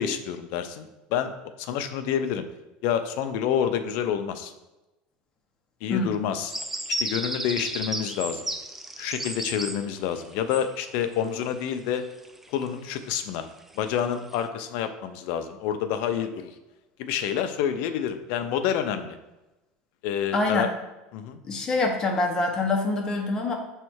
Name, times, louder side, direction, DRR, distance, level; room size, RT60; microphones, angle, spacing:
voice 1, 0.0-1.3 1.6-2.4 2.8-4.5 5.8-6.5 7.0-8.4 9.0-12.1 12.5-13.5 13.8-16.5 17.0-19.2 20.0-20.7 21.1-21.4, left 9 dB, 65° left, 8 dB, 0.6 m, -28 dB
sound 1, 6.5-11.7 11.9-13.3 13.6-14.3, right 1 dB, 5° right, 0.4 m, -33 dB
voice 2, 20.3-20.7 21.4-23.5, left 2 dB, 20° left, 0 dB, 1.2 m, -25 dB
7.2 x 3.3 x 4.6 m, 1.0 s
supercardioid pair, 135°, 3 cm